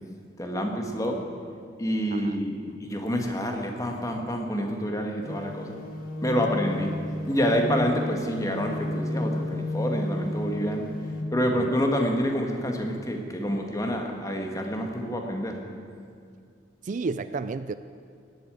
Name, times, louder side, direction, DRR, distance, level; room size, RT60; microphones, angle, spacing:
voice 1, 0.4-1.2 1.8-5.8 6.2-6.9 7.3-10.9 11.3-15.6, equal, 20° left, 2 dB, 1.8 m, -27 dB
sound 1, 5.2-11.2, left 1 dB, 50° left, 1.9 m, -32 dB
voice 2, 16.8-17.7, right 4 dB, 45° right, 13 dB, 0.4 m, -32 dB
18.0 x 8.3 x 9.2 m, 2.3 s
head